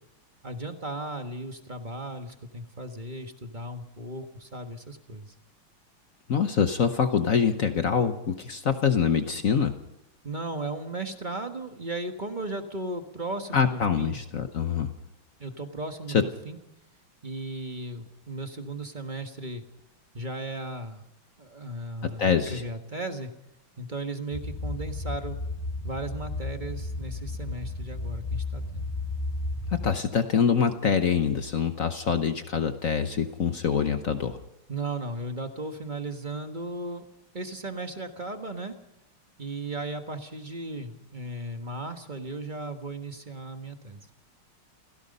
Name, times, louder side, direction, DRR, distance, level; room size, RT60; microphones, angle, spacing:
voice 1, 0.4-5.3 10.2-14.2 15.4-16.6 17.2-19.6 20.1-21.0 21.4-23.3 23.8-25.4 25.8-28.9 34.7-37.0 37.3-38.7 39.4-44.1, right 2 dB, 25° right, 6 dB, 1.3 m, -36 dB
voice 2, 6.3-9.8 13.5-14.9 16.1-16.2 22.0-22.6 29.7-34.4, left 7 dB, 50° left, 8 dB, 1.1 m, -25 dB
sound 1, 24.3-30.0, left 2 dB, 25° left, 2.4 m, -33 dB
29.0 x 16.5 x 5.4 m, 0.86 s
omnidirectional pair, 2.3 m